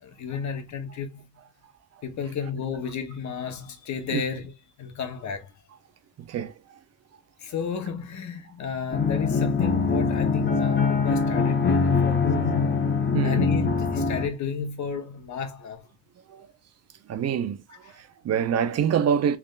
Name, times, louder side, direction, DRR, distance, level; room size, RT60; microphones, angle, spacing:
voice 1, 0.0-1.3 2.0-4.5 4.8-5.5 7.4-12.9 13.2-15.8, left 6 dB, 65° left, 1.1 m, -32 dB
voice 2, 6.2-6.5 13.1-13.5 16.3-16.5 17.1-19.4, right 8 dB, 55° right, 0.6 m, -26 dB
sound 1, 8.9-14.3, left 5 dB, 35° left, 1.0 m, -23 dB
3.5 x 3.2 x 2.4 m
cardioid pair, 90°, 30 cm